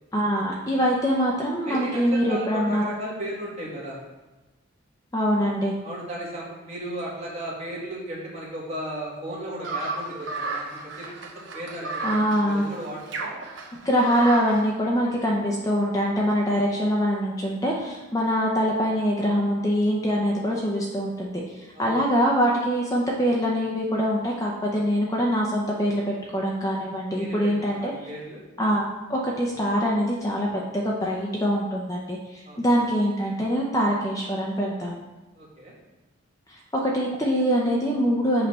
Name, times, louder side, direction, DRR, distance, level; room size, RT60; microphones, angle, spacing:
voice 1, 0.1-2.9 5.1-5.7 12.0-12.6 13.8-27.9 28.6-28.8 29.1-35.0 36.5-38.5, equal, 15° left, -2 dB, 0.6 m, -24 dB
voice 2, 1.6-4.0 5.8-12.1 12.4-13.3 21.7-22.0 27.1-28.4 32.4-32.6 35.3-35.7, right 1 dB, 35° right, -5 dB, 1.7 m, -35 dB
sound 1, 9.6-14.6, right 3 dB, 65° right, 0.9 m, -33 dB
6.6 x 3.3 x 5.4 m, 1.1 s
head